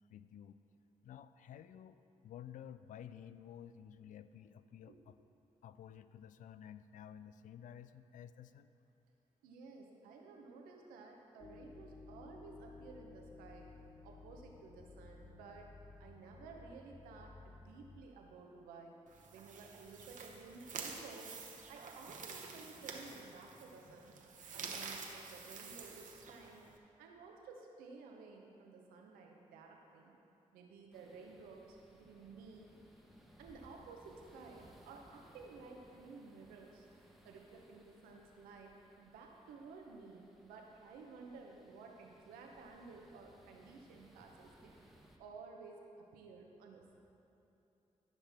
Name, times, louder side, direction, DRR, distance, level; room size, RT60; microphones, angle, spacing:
voice 1, 0.1-0.6 1.0-5.2 5.6-8.7, left 9 dB, 65° left, 13 dB, 0.4 m, -53 dB
voice 2, 9.4-13.7 14.0-15.7 16.0-19.0 19.3-21.3 21.7-24.1 24.5-26.6 27.0-30.1 30.5-32.7 33.4-36.9 37.2-44.7 45.2-46.8, right 4 dB, 90° right, 1 dB, 0.9 m, -54 dB
sound 1, 11.4-18.1, left 4 dB, 15° left, 0.6 m, -56 dB
sound 2, 19.1-26.8, right 5 dB, 65° right, 1.0 m, -49 dB
sound 3, 30.9-45.2, equal, ahead, 1.2 m, -64 dB
14.0 x 5.7 x 3.6 m, 2.9 s
supercardioid pair, 45°, 14 cm